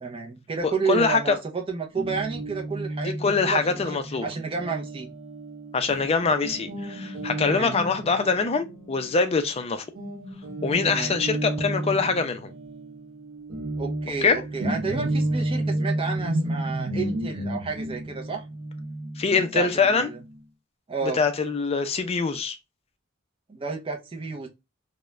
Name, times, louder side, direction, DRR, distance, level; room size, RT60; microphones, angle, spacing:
voice 1, 0.0-5.1 7.5-7.7 10.9-11.2 13.8-18.4 19.4-20.2 20.9-21.2 23.5-24.5, right 4 dB, 25° right, 0.5 m, -31 dB
voice 2, 0.6-1.4 3.0-4.3 5.7-9.8 10.6-12.5 14.2-14.4 19.2-20.1 21.0-22.6, left 4 dB, 30° left, 0.4 m, -24 dB
Guitar, 2.0-9.6 10.0-20.4, right 1 dB, 75° right, 0.6 m, -32 dB
2.4 x 2.1 x 3.0 m
head